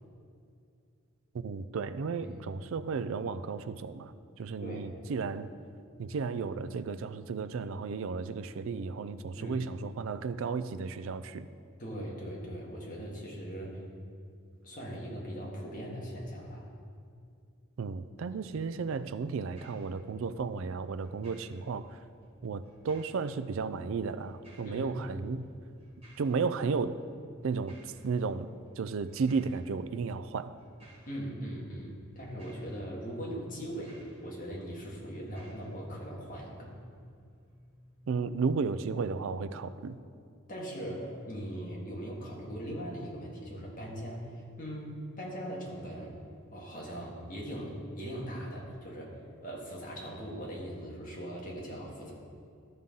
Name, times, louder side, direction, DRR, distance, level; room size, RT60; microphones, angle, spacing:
voice 1, 1.3-4.1 4.4-5.5 6.0-11.5 17.8-22.0 22.4-25.5 26.2-27.0 27.4-30.5 38.1-40.0, right 5 dB, 65° right, 13 dB, 0.4 m, -34 dB
voice 2, 9.4-9.7 11.8-13.8 14.6-16.7 24.6-24.9 31.1-36.8 40.5-46.2 46.5-52.1, equal, 35° left, -3 dB, 1.7 m, -40 dB
sound 1, 18.4-38.2, right 1 dB, 25° right, 1.8 m, -61 dB
13.0 x 5.5 x 3.8 m, 2.4 s
head